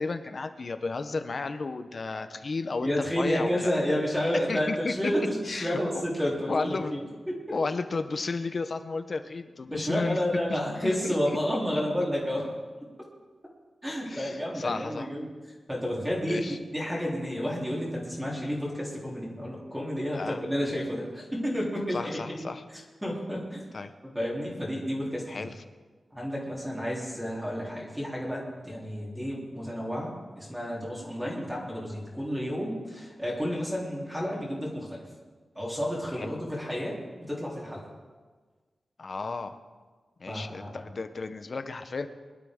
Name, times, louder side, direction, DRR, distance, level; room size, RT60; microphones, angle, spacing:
voice 1, 0.0-3.7 4.3-5.1 5.5-5.8 6.5-6.9 7.5-10.2 10.5-11.1 14.1-15.1 16.3-16.6 20.1-20.4 21.9-22.6 23.7-23.9 25.3-25.5 36.2-36.4 39.0-39.6 40.2-42.1, left 3 dB, 40° left, 9 dB, 0.8 m, -33 dB
voice 2, 2.8-7.6 9.7-12.5 13.8-15.3 15.7-22.2 22.7-23.6 24.1-25.5 26.1-35.0 35.5-37.0 37.3-37.8 40.3-40.8, equal, 5° right, -4 dB, 3.2 m, -31 dB
22.5 x 12.0 x 3.7 m, 1.4 s
wide cardioid pair, 175°, 0 cm